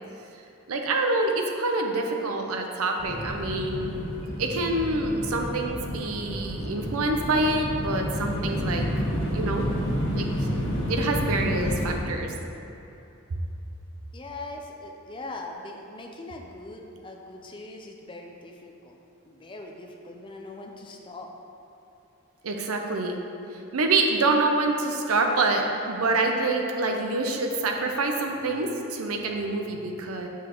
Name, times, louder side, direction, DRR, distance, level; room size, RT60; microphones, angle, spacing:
voice 1, 0.7-3.9 4.4-8.9 9.3-9.6 10.1-12.3 22.4-23.2 23.5-30.3, right 2 dB, 90° right, 3 dB, 0.6 m, -26 dB
sound 1, 3.0-12.0, equal, 75° left, 1.2 m, -30 dB
voice 2, 14.1-19.0 19.2-21.3, left 2 dB, 25° left, 2 dB, 0.5 m, -41 dB
7.0 x 6.0 x 3.0 m, 2.9 s
head